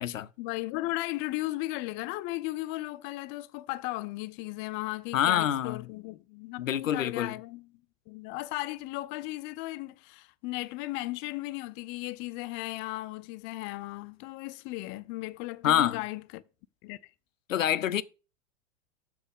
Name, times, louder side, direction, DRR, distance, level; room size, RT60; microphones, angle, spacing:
voice 1, 0.4-7.7 8.1-16.4 16.8-17.0, left 19 dB, 30° left, 0.4 m, -36 dB
voice 2, 5.1-5.8 6.6-7.4 15.6-16.0 17.5-18.0, left 10 dB, 85° left, 0.5 m, -26 dB
7.2 x 6.0 x 3.6 m
hypercardioid pair, 95°, 38 cm